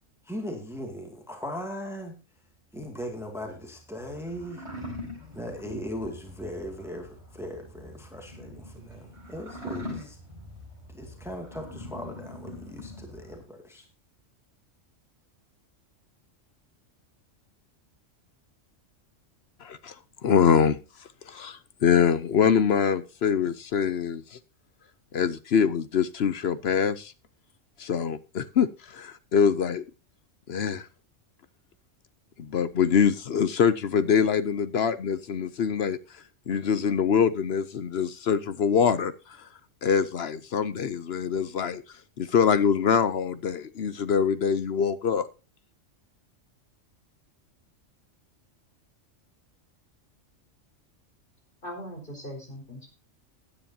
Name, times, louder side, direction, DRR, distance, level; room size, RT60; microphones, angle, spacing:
voice 1, 0.3-2.1 2.7-4.6 5.3-10.2 10.9-13.8, equal, ahead, 3 dB, 2.2 m, -38 dB
sound 1, 2.9-13.4, left 1 dB, 25° right, 5.5 m, -43 dB
voice 2, 20.2-20.8 21.3-24.2 25.1-27.1 27.8-28.7 28.9-29.8 30.5-30.8 32.5-36.0 36.5-39.1 39.8-41.8 42.2-45.3, left 7 dB, 60° left, 14 dB, 0.9 m, -24 dB
voice 3, 51.6-52.9, equal, 40° left, 1 dB, 4.8 m, -39 dB
16.0 x 10.0 x 2.8 m, 0.31 s
omnidirectional pair, 1.3 m